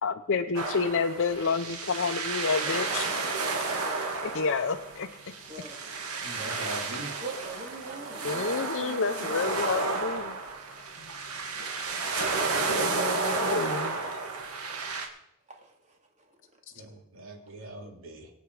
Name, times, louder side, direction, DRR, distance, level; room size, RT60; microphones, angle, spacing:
voice 1, 0.0-3.3 4.2-5.1 8.2-10.4 11.0-11.1 12.6-14.1, left 4 dB, 55° left, 5 dB, 0.7 m, -29 dB
sound 1, 0.6-15.1, right 3 dB, 80° right, 2.4 m, -32 dB
voice 2, 5.5-5.8 7.2-9.7 15.5-16.3, right 2 dB, 30° right, 1 dB, 2.9 m, -43 dB
voice 3, 6.2-7.2 16.7-18.3, right 2 dB, 60° right, 1 dB, 3.2 m, -42 dB
23.5 x 8.2 x 4.9 m, 0.82 s
head